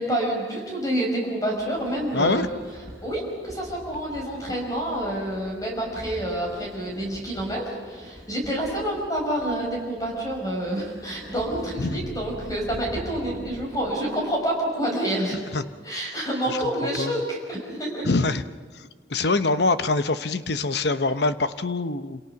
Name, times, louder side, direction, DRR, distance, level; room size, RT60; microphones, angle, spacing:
voice 1, 0.0-2.5 3.0-15.4 15.8-18.1, right 1 dB, 20° left, -1 dB, 5.7 m, -28 dB
Sliding door, 1.5-13.8, equal, 20° right, 6.7 m, -44 dB
voice 2, 2.1-2.5 11.8-12.1 15.5-15.6 16.5-16.6 17.0-17.2 18.0-18.4 18.7-22.2, left 3 dB, 65° left, 11 dB, 0.9 m, -24 dB
sound 1, 10.8-14.8, right 1 dB, 45° right, 1.4 m, -43 dB
28.0 x 27.5 x 6.0 m, 1.5 s
head